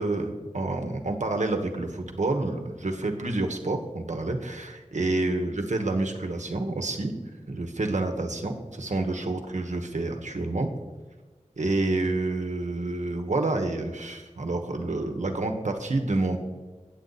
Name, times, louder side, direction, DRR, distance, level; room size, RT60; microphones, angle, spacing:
voice 1, 0.0-7.2 7.5-10.7 11.6-16.4, right 2 dB, 75° right, 4 dB, 1.1 m, -28 dB
8.4 x 8.2 x 4.0 m, 1.3 s
wide cardioid pair, 60°, 13 cm